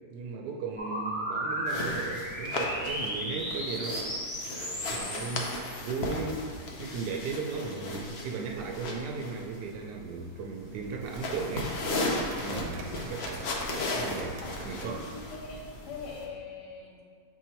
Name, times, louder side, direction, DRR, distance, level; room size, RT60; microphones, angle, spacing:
voice 1, 0.1-4.0 4.5-6.4 6.8-13.5 13.9-15.1, right 4 dB, 85° right, 2 dB, 1.2 m, -37 dB
sound 1, 0.8-6.3, equal, 20° left, 1.1 m, -35 dB
sound 2, 1.7-16.3, left 2 dB, 55° left, 0.7 m, -36 dB
sound 3, 7.9-14.9, right 3 dB, 65° right, 1.1 m, -47 dB
voice 2, 14.4-17.0, left 4 dB, 75° left, -2 dB, 1.4 m, -43 dB
7.9 x 2.7 x 4.4 m, 2.1 s
omnidirectional pair, 1.7 m